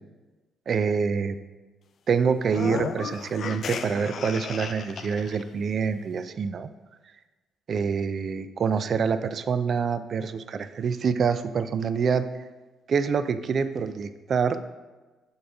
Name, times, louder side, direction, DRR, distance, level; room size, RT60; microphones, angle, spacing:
voice 1, 0.7-1.4 2.1-6.7 7.7-12.2 12.9-14.6, right 6 dB, 50° right, 12 dB, 0.3 m, -26 dB
sound 1, 2.4-5.4, left 6 dB, 55° left, 0.3 m, -34 dB
7.7 x 3.9 x 3.4 m, 1.2 s
cardioid pair, 115°, 0 cm